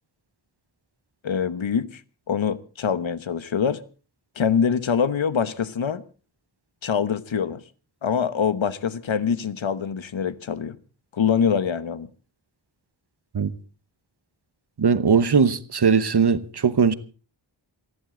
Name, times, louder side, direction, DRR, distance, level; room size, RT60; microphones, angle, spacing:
voice 1, 1.2-2.0 2.3-3.8 4.4-6.0 6.8-7.6 8.0-10.8 11.1-12.1, left 7 dB, 80° left, 1.1 m, -24 dB
voice 2, 14.8-16.9, right 6 dB, 55° right, 1.1 m, -19 dB
28.0 x 11.0 x 3.8 m
wide cardioid pair, 85°, 46 cm